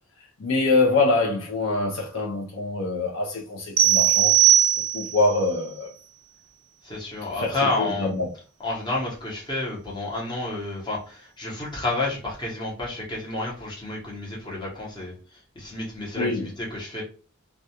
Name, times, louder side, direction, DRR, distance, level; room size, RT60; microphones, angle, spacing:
voice 1, 0.4-4.3 4.9-5.9 7.3-8.3 16.2-16.4, left 3 dB, 60° left, 0.5 m, -24 dB
sound 1, 3.8-5.3, right 12 dB, 65° right, 0.3 m, -18 dB
voice 2, 6.8-8.1 8.6-15.1 15.6-17.0, left 2 dB, 20° left, 0.8 m, -30 dB
2.3 x 2.3 x 2.7 m
head